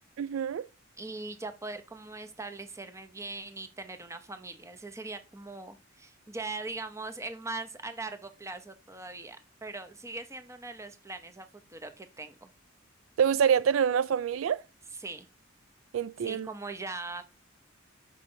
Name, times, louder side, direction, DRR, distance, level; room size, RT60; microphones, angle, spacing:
voice 1, 0.2-0.7 13.2-14.6 15.9-16.5, right 8 dB, 75° right, 0.4 m, -26 dB
voice 2, 1.0-12.5 14.9-15.3 16.2-17.2, right 3 dB, 15° right, 0.9 m, -40 dB
6.3 x 5.2 x 4.4 m
head